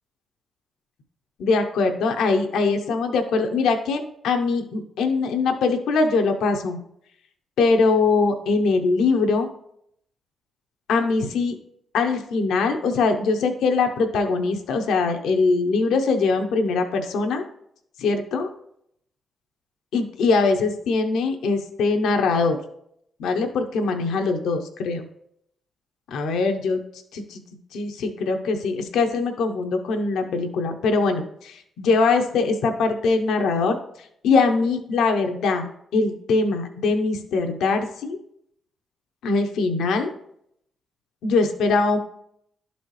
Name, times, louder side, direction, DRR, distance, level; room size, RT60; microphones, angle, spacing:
voice 1, 1.4-6.8 7.6-9.5 10.9-11.6 11.9-17.4 18.0-18.5 19.9-22.6 23.2-25.0 26.1-26.8 27.1-27.4 27.7-33.8 34.2-35.7 35.9-38.2 39.2-40.1 41.2-42.0, left 4 dB, 85° left, 5 dB, 0.7 m, -22 dB
11.5 x 4.1 x 3.2 m, 0.71 s
cardioid pair, 65°, 0 cm